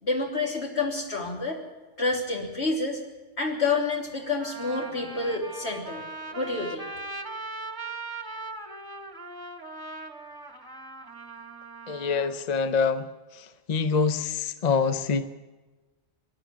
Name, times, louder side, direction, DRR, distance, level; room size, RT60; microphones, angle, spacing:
voice 1, 0.0-1.6 2.0-3.0 3.4-6.0 6.3-6.8, left 3 dB, 80° left, 0 dB, 3.6 m, -28 dB
Trumpet, 3.7-3.8 4.4-12.3, right 2 dB, 20° right, 1.6 m, -39 dB
voice 2, 11.9-13.1 13.7-15.4, left 5 dB, 45° left, 11 dB, 0.8 m, -25 dB
25.5 x 11.0 x 9.5 m, 1.2 s
omnidirectional pair, 1.1 m